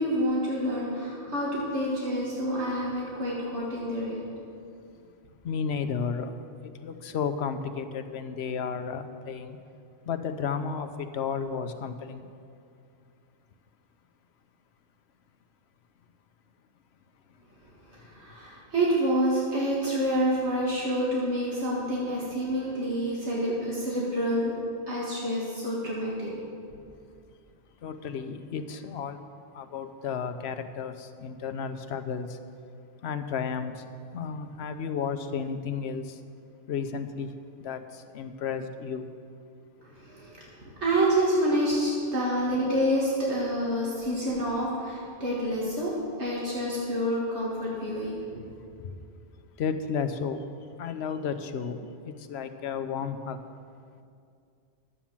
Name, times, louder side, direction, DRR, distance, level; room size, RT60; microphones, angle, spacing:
voice 1, 0.0-4.2 17.9-24.5 24.9-26.3 39.8-48.4, equal, 75° right, -5 dB, 2.1 m, -28 dB
voice 2, 5.4-6.3 6.6-9.6 10.1-12.3 27.8-29.2 29.5-32.3 33.0-33.7 34.1-36.0 36.7-37.3 37.6-37.8 38.1-39.0 49.6-50.4 50.8-51.8 52.3-53.4, left 6 dB, 70° left, 9 dB, 0.9 m, -32 dB
11.5 x 7.3 x 7.3 m, 2.4 s
omnidirectional pair, 1.2 m